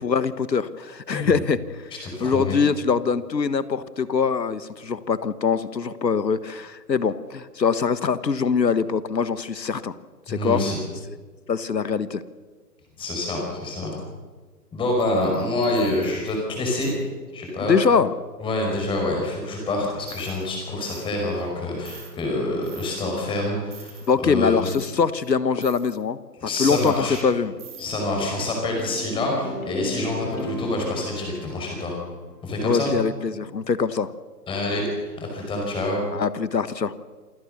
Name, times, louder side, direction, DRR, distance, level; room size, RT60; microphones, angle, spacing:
voice 1, 0.0-1.6 2.2-9.9 10.3-10.6 11.1-11.2 11.5-12.2 17.6-18.1 24.1-26.2 26.6-27.5 32.6-34.1 36.1-36.9, left 5 dB, 80° left, 15 dB, 1.5 m, -23 dB
voice 2, 2.0-2.6 10.3-10.8 13.0-14.0 14.7-16.9 17.3-17.8 18.4-24.7 26.4-27.2 27.8-32.0 32.4-32.9 34.5-36.0, left 2 dB, 10° left, 0 dB, 5.4 m, -26 dB
sound 1, 14.9-17.0 20.1-20.4 20.8-21.1 21.4-21.5 21.8-22.1 22.6-23.2 23.7-24.1 24.6-25.3 25.6-26.0 26.6-27.3 27.6-27.8, right 9 dB, 10° right, 3.5 m, -47 dB
sound 2, 27.1-32.5, left 1 dB, 55° left, 6.6 m, -36 dB
27.0 x 16.5 x 6.8 m, 1.4 s
figure-of-eight pair, 145°, 49 cm